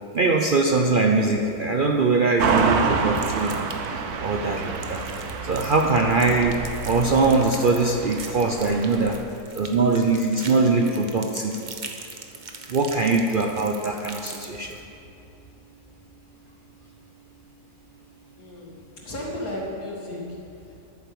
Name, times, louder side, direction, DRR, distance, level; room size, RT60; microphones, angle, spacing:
voice 1, 0.1-5.0 5.4-9.2 9.5-11.6 12.7-14.8, right 3 dB, 55° right, 2 dB, 0.6 m, -22 dB
sound 1, 2.4-9.2, right 5 dB, 80° right, 1.4 m, -28 dB
sound 2, 3.1-4.0 4.5-14.8, right 4 dB, 35° right, 0.9 m, -41 dB
voice 2, 18.4-20.9, left 1 dB, 70° left, -4 dB, 2.8 m, -35 dB
11.0 x 9.3 x 6.9 m, 2.7 s
omnidirectional pair, 1.6 m